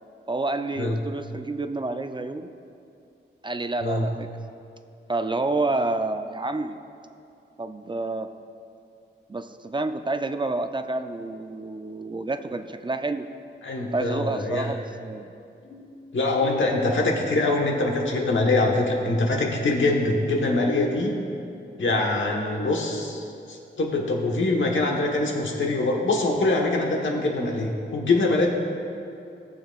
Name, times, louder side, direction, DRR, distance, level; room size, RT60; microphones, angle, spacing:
voice 1, 0.3-2.5 3.4-4.3 5.1-6.8 7.6-8.3 9.3-13.3 13.9-15.3, right 2 dB, 25° right, 8 dB, 0.4 m, -29 dB
voice 2, 13.6-14.7 15.7-15.8 16.1-21.1 21.8-28.5, left 2 dB, 85° left, 0 dB, 1.2 m, -24 dB
17.5 x 6.9 x 2.4 m, 2.6 s
wide cardioid pair, 80°, 19 cm